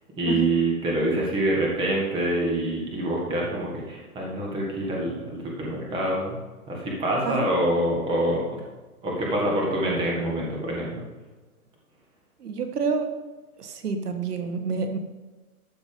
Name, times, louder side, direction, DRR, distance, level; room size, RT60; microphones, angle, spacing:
voice 1, 0.2-6.4 6.7-8.6 9.0-11.0, right 1 dB, 10° right, -2 dB, 1.9 m, -26 dB
voice 2, 12.4-13.1 13.6-15.0, right 5 dB, 90° right, 6 dB, 1.8 m, -28 dB
12.5 x 7.1 x 5.3 m, 1.2 s
hypercardioid pair, 165°, 45 cm